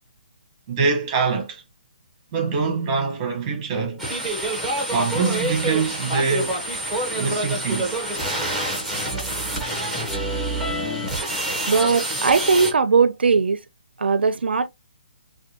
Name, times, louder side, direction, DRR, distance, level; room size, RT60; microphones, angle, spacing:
voice 1, 0.7-1.6 2.3-4.0 4.8-6.6 7.1-8.0, right 5 dB, 20° right, 1.0 m, -24 dB
sound 1, 4.0-12.7, right 1 dB, 5° left, 1.0 m, -26 dB
voice 2, 11.7-13.6 14.0-14.7, right 5 dB, 85° right, 0.4 m, -19 dB
4.4 x 2.3 x 2.7 m
hypercardioid pair, 160°, 6 cm